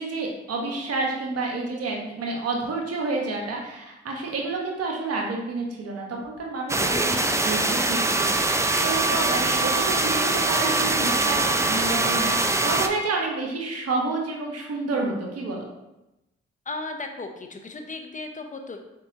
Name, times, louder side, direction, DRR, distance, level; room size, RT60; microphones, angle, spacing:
voice 1, 0.0-15.6, right 3 dB, 55° right, 0 dB, 1.1 m, -29 dB
sound 1, 6.7-12.9, right 2 dB, 10° right, 0.4 m, -23 dB
voice 2, 16.7-18.8, left 3 dB, 25° left, 5 dB, 0.7 m, -35 dB
4.0 x 3.7 x 2.8 m, 0.94 s
hypercardioid pair, 40°, 29 cm